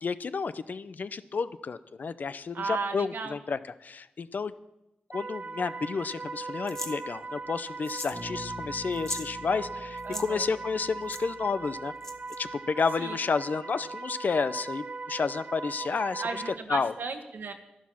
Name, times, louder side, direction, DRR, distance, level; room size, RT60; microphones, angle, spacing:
voice 1, 0.0-4.5 5.1-11.9 12.4-16.4 16.7-16.9, left 5 dB, 65° left, 14 dB, 0.6 m, -31 dB
voice 2, 2.5-3.4 10.0-10.5 13.0-13.1 16.2-17.5, right 4 dB, 85° right, 6 dB, 1.5 m, -35 dB
sound 1, 5.1-16.6, right 3 dB, 45° right, 0.4 m, -39 dB
sound 2, 6.7-7.0 7.8-8.2 8.5-8.6 8.9-9.3 10.0-10.3 11.1-11.2 12.0-12.4, left 1 dB, 15° left, 1.3 m, -38 dB
Bass guitar, 8.1-12.1, left 2 dB, 85° left, 4.5 m, -47 dB
11.5 x 11.5 x 6.1 m, 0.93 s
wide cardioid pair, 75°, 3 cm